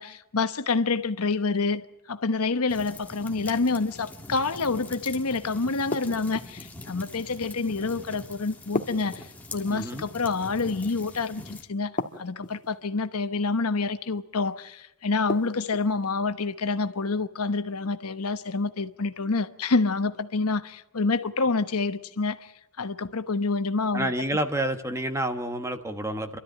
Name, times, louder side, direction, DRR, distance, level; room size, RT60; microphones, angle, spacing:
voice 1, 0.0-22.5 22.8-24.1, left 3 dB, 90° left, 1.1 m, -27 dB
sound 1, 2.7-11.6, left 2 dB, 5° left, 1.7 m, -43 dB
sound 2, 5.9-6.7 8.7-9.8 12.0-12.7 15.3-15.9, left 2 dB, 35° left, 1.5 m, -33 dB
voice 2, 9.7-10.1 23.9-26.4, right 1 dB, 15° right, 1.3 m, -29 dB
29.5 x 13.0 x 9.2 m
head